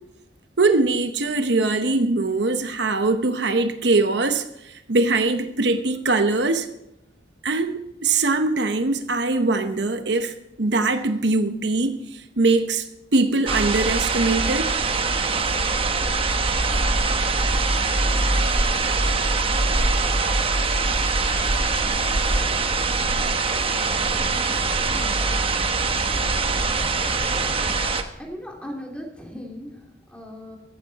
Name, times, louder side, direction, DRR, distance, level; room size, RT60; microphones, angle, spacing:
voice 1, 0.6-6.7 7.4-12.9 13.1-14.7, right 3 dB, 65° right, 8 dB, 0.9 m, -22 dB
sound 1, 13.5-28.0, right 3 dB, 30° right, 1.0 m, -22 dB
voice 2, 24.9-25.2 26.8-26.9 28.2-30.6, equal, 5° left, 0 dB, 2.8 m, -38 dB
15.0 x 14.0 x 4.1 m, 0.83 s
head